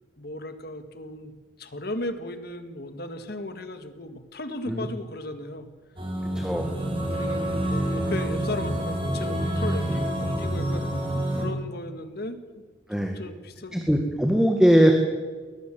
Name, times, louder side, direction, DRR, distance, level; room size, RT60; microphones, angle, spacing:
voice 1, 0.2-1.3 1.6-5.7 7.0-11.0 11.3-12.4 13.1-13.8, left 1 dB, 50° left, 9 dB, 1.9 m, -36 dB
sound 1, 6.0-11.5, right 1 dB, 25° right, 5.0 m, -27 dB
voice 2, 6.4-6.7 11.3-11.5 12.9-13.2 13.7-14.9, equal, 5° right, 3 dB, 1.9 m, -20 dB
22.0 x 18.0 x 7.8 m, 1.4 s
head